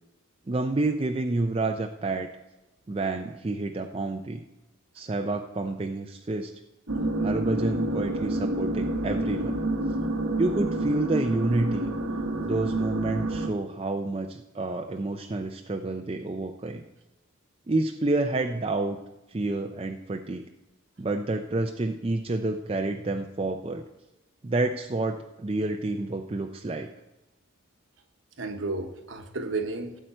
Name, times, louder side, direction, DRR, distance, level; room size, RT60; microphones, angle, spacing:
voice 1, 0.5-2.3 2.9-4.4 4.9-6.5 7.2-9.6 10.4-11.9 12.4-16.8 17.7-19.0 19.3-20.4 21.0-23.8 24.4-26.9, right 2 dB, 25° right, 4 dB, 0.4 m, -29 dB
sound 1, 6.9-13.5, right 1 dB, 85° right, 1.2 m, -28 dB
voice 2, 28.4-30.0, right 3 dB, 60° right, 6 dB, 1.1 m, -33 dB
16.5 x 7.9 x 4.4 m, 0.99 s
head